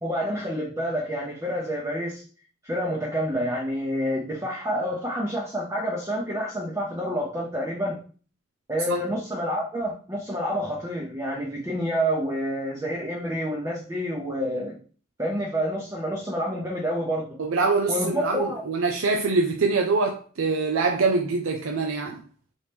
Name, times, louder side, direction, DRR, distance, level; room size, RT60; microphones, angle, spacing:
voice 1, 0.0-2.2 2.6-8.0 8.7-14.8 15.2-17.3 17.9-18.6, equal, 15° right, 0.7 m, -28 dB
voice 2, 17.4-22.2, right 4 dB, 85° right, 0.5 m, -24 dB
4.2 x 3.1 x 3.4 m
head